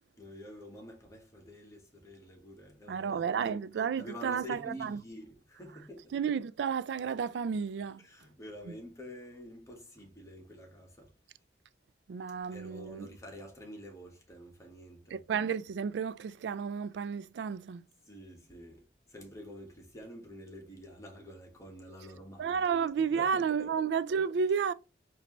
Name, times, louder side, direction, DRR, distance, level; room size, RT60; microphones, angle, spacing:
voice 1, 0.2-3.6 4.0-6.1 8.0-11.1 12.5-15.2 18.1-22.6 23.1-23.7, equal, 20° left, 1.2 m, -48 dB
voice 2, 2.9-5.0 6.1-8.0 12.1-13.1 15.1-17.9 22.4-24.7, right 6 dB, 75° right, 0.3 m, -32 dB
4.4 x 2.7 x 3.0 m
head